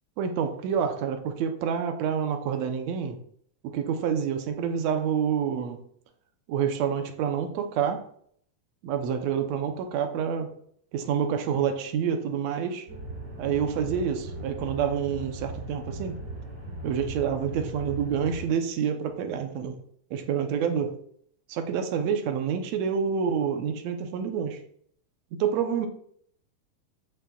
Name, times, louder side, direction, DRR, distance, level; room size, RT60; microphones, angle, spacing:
voice 1, 0.2-3.2 3.6-5.8 6.5-8.1 8.8-10.6 10.9-12.9 13.4-16.2 16.8-19.8 20.1-21.0 21.5-24.6 25.4-25.9, right 7 dB, 70° right, 6 dB, 1.8 m, -28 dB
sound 1, 12.9-18.5, right 1 dB, 25° right, 4.5 m, -38 dB
14.0 x 6.4 x 2.4 m, 0.64 s
omnidirectional pair, 3.8 m